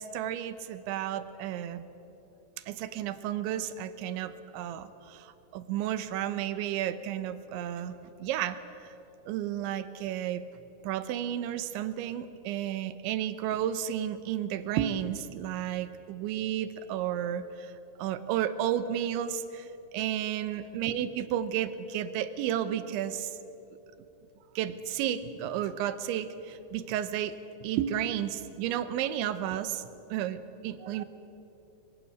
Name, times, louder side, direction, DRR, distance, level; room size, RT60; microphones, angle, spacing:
voice 1, 0.0-1.8 2.7-8.6 9.3-10.4 10.8-17.7 18.0-23.3 24.6-29.8 30.1-31.1, right 10 dB, 80° right, 12 dB, 3.2 m, -32 dB
24.0 x 23.5 x 7.8 m, 3.0 s
omnidirectional pair, 5.4 m